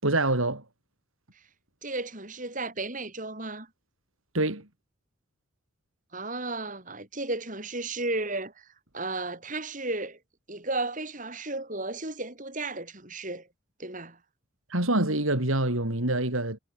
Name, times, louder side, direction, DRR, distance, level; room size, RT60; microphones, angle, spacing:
voice 1, 0.0-0.6 4.3-4.7 14.7-16.6, right 2 dB, 85° right, 4.6 m, -25 dB
voice 2, 1.8-3.7 6.1-8.7 8.9-10.2 10.5-13.5 13.8-14.2, right 2 dB, 40° right, 6.9 m, -34 dB
head